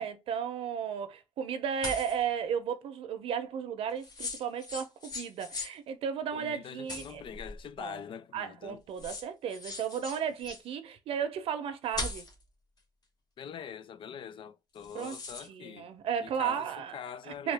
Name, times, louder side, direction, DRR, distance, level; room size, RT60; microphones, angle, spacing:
voice 1, 0.0-7.2 7.8-8.0 8.3-12.3 14.9-15.2 15.5-16.9 17.4-17.5, right 8 dB, 80° right, 0.7 m, -34 dB
sound 1, 1.8-2.2 4.0-5.7 6.9-7.6 8.6-8.7 9.0-10.6 11.9-12.4 14.7-15.5, left 3 dB, 40° left, 1.5 m, -39 dB
voice 2, 6.3-8.8 13.4-15.9 16.2-17.5, left 8 dB, 60° left, 0.5 m, -44 dB
3.7 x 2.3 x 3.4 m
cardioid pair, 110°, 10 cm